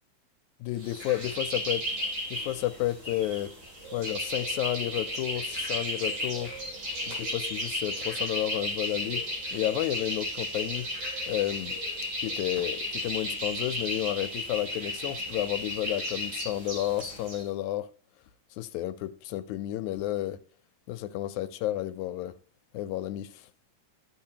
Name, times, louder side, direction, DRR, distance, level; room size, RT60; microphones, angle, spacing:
voice 1, 0.6-1.8 2.3-3.5 3.9-6.5 7.1-9.2 9.5-10.9 11.3-11.8 12.2-17.9 18.6-20.4 20.9-22.3 22.7-23.5, left 14 dB, 80° left, 1.9 m, -31 dB
sound 1, 0.8-17.4, left 1 dB, 65° right, 4.4 m, -34 dB
12.5 x 7.0 x 2.8 m
omnidirectional pair, 3.5 m